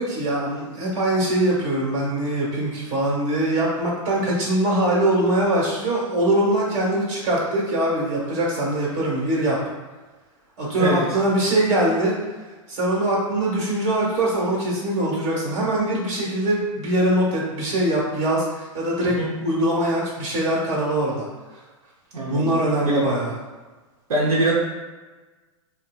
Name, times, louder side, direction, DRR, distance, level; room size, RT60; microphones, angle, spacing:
voice 1, 0.0-9.6 10.6-12.2 12.7-21.3 22.3-23.3, right 1 dB, 40° right, -3 dB, 1.4 m, -22 dB
voice 2, 22.1-22.6 22.8-23.1 24.1-24.5, right 1 dB, 85° right, -4 dB, 0.9 m, -23 dB
5.3 x 2.1 x 2.3 m, 1.3 s
hypercardioid pair, 120°, 18 cm